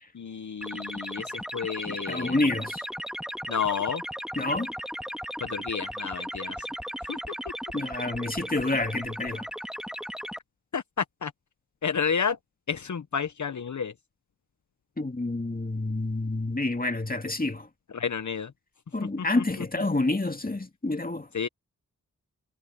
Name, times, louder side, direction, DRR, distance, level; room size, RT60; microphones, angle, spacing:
voice 1, 0.1-2.3 3.5-4.0 5.4-6.6 7.1-7.2 10.7-10.8 11.2-11.3 11.8-12.4 12.7-13.9 17.9-18.5 21.3-21.5, left 6 dB, 55° left, 1.0 m, -30 dB
sound 1, 0.6-10.4, equal, ahead, 2.2 m, -36 dB
voice 2, 1.9-2.9 4.4-4.7 7.7-9.5 15.0-17.7 18.9-21.3, left 2 dB, 25° left, 2.4 m, -28 dB
cardioid pair, 45°, 34 cm